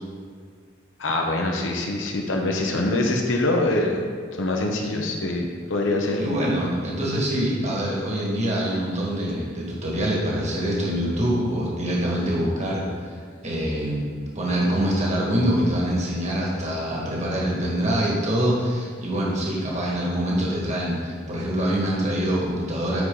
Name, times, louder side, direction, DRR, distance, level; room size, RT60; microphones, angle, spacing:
voice 1, 1.0-4.0 4.4-6.2, left 2 dB, 80° left, 1 dB, 0.8 m, -24 dB
voice 2, 6.2-13.2 13.4-14.1 14.3-23.0, equal, 40° right, -4 dB, 1.7 m, -25 dB
9.0 x 4.8 x 3.8 m, 2.1 s
head